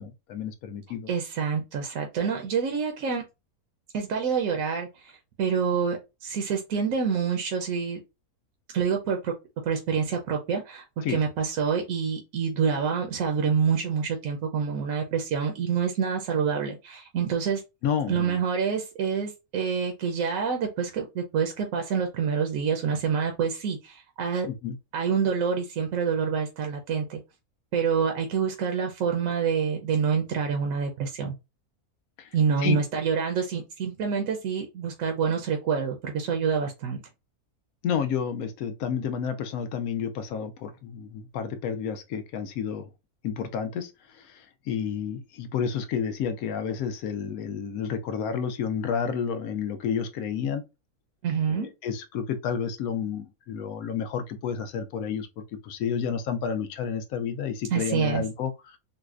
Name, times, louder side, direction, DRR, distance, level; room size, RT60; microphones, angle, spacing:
voice 1, 0.0-1.1 11.0-11.2 17.8-18.4 24.5-24.8 32.2-32.3 32.6-32.8 37.8-42.9 43.2-50.6 51.5-55.3 55.6-58.8, left 7 dB, 75° left, 1.0 m, -30 dB
voice 2, 1.1-3.2 3.9-8.0 8.7-9.3 9.6-17.6 18.1-24.5 24.9-27.2 27.7-31.3 32.3-37.0 51.2-51.7 57.7-58.2, right 6 dB, 70° right, 1.0 m, -27 dB
4.0 x 2.1 x 2.4 m
omnidirectional pair, 1.6 m